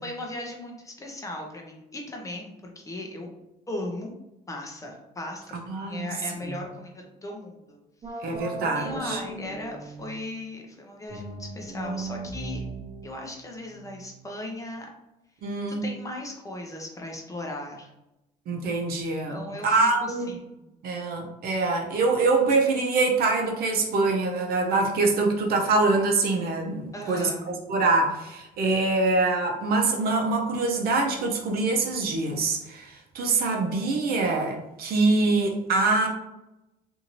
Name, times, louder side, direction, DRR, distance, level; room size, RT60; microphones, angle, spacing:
voice 1, 0.0-3.3 3.7-4.1 4.5-7.8 8.0-8.4 8.7-12.6 13.0-14.9 15.8-17.9 19.3-20.7 26.9-27.5, left 1 dB, 20° left, 1 dB, 0.6 m, -37 dB
voice 2, 5.7-6.1 6.4-6.6 8.2-9.2 15.4-15.8 18.5-20.3 20.8-27.3 27.7-36.1, right 3 dB, 65° right, 1 dB, 0.7 m, -24 dB
sound 1, 8.0-10.3 11.1-14.4, right 3 dB, 30° right, 0.7 m, -38 dB
2.6 x 2.6 x 2.9 m, 0.90 s
cardioid pair, 110°, 17 cm